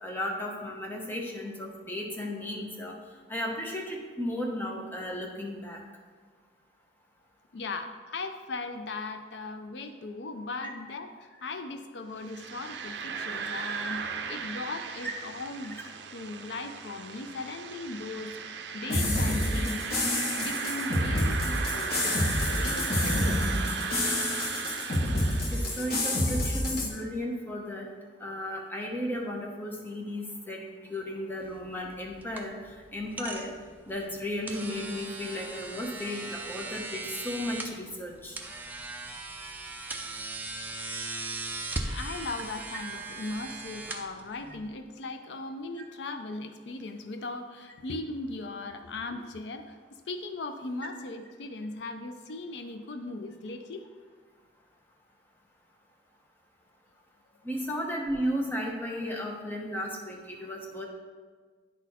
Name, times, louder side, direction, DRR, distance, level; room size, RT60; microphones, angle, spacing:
voice 1, 0.0-2.9 3.3-5.8 10.6-10.7 25.5-27.9 28.2-32.6 32.9-33.5 33.9-38.4 57.4-60.9, left 1 dB, 10° left, -1 dB, 0.9 m, -34 dB
voice 2, 7.5-15.8 16.1-18.3 18.7-19.9 20.3-23.6 41.9-49.8 50.1-53.9, left 3 dB, 75° left, 7 dB, 0.4 m, -38 dB
sound 1, 12.2-26.2, right 6 dB, 70° right, 0.5 m, -36 dB
sound 2, 18.9-26.9, left 1 dB, 55° left, 1.2 m, -28 dB
sound 3, 31.4-44.7, right 2 dB, 10° right, 0.5 m, -39 dB
10.0 x 4.1 x 4.2 m, 1.5 s
head